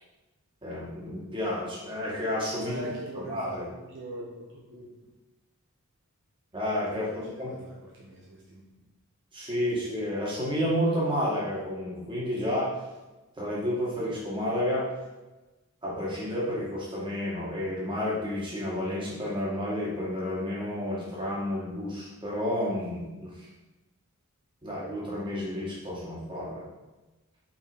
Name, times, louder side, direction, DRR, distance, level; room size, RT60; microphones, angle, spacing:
voice 1, 0.6-2.8 3.2-3.7 6.5-7.5 9.3-12.7 13.3-14.9 15.8-23.5 24.6-26.7, left 1 dB, 20° right, -6 dB, 2.0 m, -31 dB
voice 2, 2.6-4.9 6.9-8.6, equal, 55° right, -4 dB, 1.2 m, -42 dB
5.7 x 4.8 x 5.1 m, 1.1 s
head